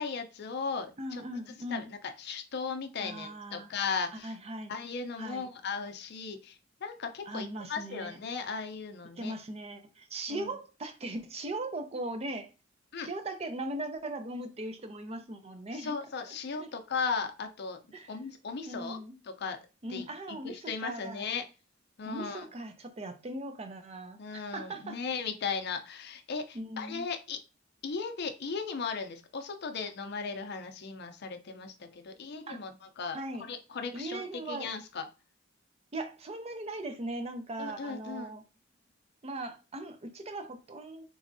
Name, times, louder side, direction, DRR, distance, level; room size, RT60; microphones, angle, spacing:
voice 1, 0.0-1.2 1.7-4.4 4.7-9.3 10.3-10.5 12.9-13.1 15.7-17.8 18.1-19.0 19.4-19.6 19.9-21.4 22.0-22.5 24.2-27.4 27.8-35.0 37.6-38.3, left 5 dB, 60° left, 0.5 m, -37 dB
voice 2, 1.0-1.9 3.0-3.7 4.2-4.7 5.2-5.5 7.3-8.2 9.2-12.5 13.0-15.9 16.3-16.7 17.9-18.1 18.6-19.2 19.8-21.3 22.1-25.0 26.5-27.1 32.5-32.6 33.1-33.5 33.9-34.7 35.9-38.4 39.2-41.0, right 1 dB, 30° right, 0.5 m, -39 dB
3.5 x 3.1 x 2.6 m
head